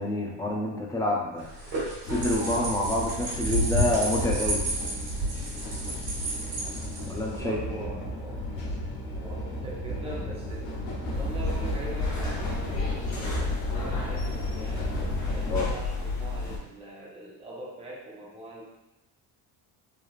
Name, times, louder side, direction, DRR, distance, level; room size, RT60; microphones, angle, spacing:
voice 1, 0.0-1.5 2.0-4.6 7.1-7.6 15.5-15.7, left 1 dB, 10° left, -2 dB, 0.3 m, -28 dB
sound 1, 1.4-7.4, right 1 dB, 65° right, 1.4 m, -30 dB
sound 2, 2.0-15.7, equal, 80° left, 0.9 m, -35 dB
voice 2, 7.4-8.4 9.2-14.9 15.3-18.6, right 1 dB, 15° right, -5 dB, 0.7 m, -42 dB
sound 3, 11.1-16.6, left 3 dB, 40° left, 0.8 m, -31 dB
3.1 x 2.4 x 2.4 m, 0.98 s
cardioid pair, 115°, 42 cm